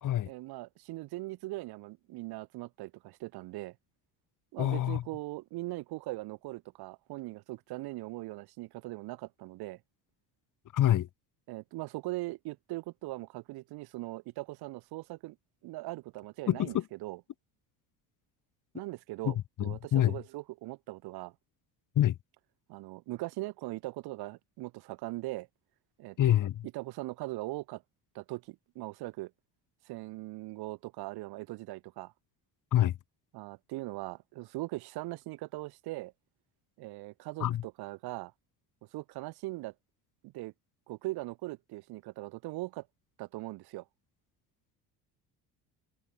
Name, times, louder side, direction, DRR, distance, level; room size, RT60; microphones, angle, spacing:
voice 1, 0.2-3.7 4.5-9.8 11.5-15.4 15.6-17.2 18.7-21.3 22.7-25.5 26.0-26.3 26.7-27.8 28.1-29.3 29.8-32.1 33.3-36.1 36.8-38.3 38.9-39.7 40.2-40.5 40.9-42.9 43.2-43.8, right 20 dB, 75° right, 1.5 m, -40 dB
voice 2, 4.6-5.0 10.7-11.1 16.5-16.8 19.3-19.4 19.6-20.2 22.0-22.2 26.2-26.6 32.7-32.9 37.4-37.6, left 12 dB, 50° left, 2.1 m, -26 dB
cardioid pair, 105°, 39 cm